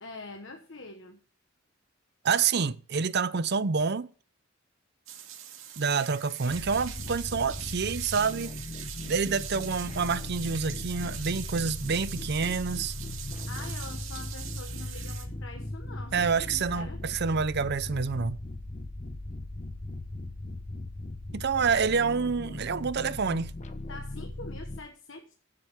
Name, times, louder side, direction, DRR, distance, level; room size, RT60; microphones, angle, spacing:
voice 1, 0.0-1.2 6.9-7.1 13.5-17.0 23.9-25.3, left 3 dB, 65° left, 1.3 m, -45 dB
voice 2, 2.2-4.1 5.8-8.6 9.0-12.9 16.1-18.4 21.3-23.5, right 5 dB, 55° right, 0.6 m, -28 dB
sound 1, 5.1-15.3, right 10 dB, 75° right, 2.2 m, -42 dB
sound 2, 6.5-24.8, left 1 dB, 35° left, 1.0 m, -38 dB
15.0 x 7.7 x 3.6 m
head